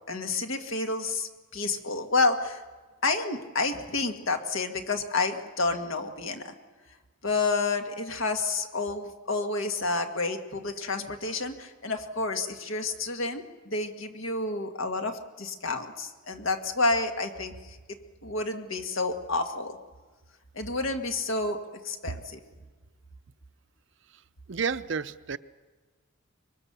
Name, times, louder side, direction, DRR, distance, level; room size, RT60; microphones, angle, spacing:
voice 1, 0.1-2.6 3.0-6.5 7.2-17.5 18.2-19.8 20.6-22.4, left 3 dB, 70° left, 5 dB, 1.8 m, -29 dB
voice 2, 24.5-25.4, right 5 dB, 60° right, 13 dB, 0.6 m, -30 dB
24.5 x 22.5 x 6.9 m, 1.4 s
head